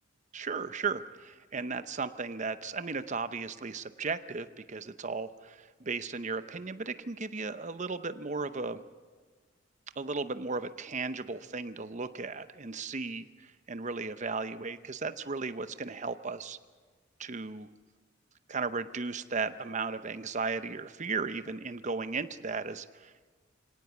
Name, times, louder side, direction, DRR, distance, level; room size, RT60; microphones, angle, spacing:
voice 1, 0.3-8.8 10.0-16.6 17.2-17.7 18.5-23.1, right 4 dB, 35° right, 12 dB, 0.7 m, -35 dB
24.5 x 17.5 x 7.1 m, 1.5 s
head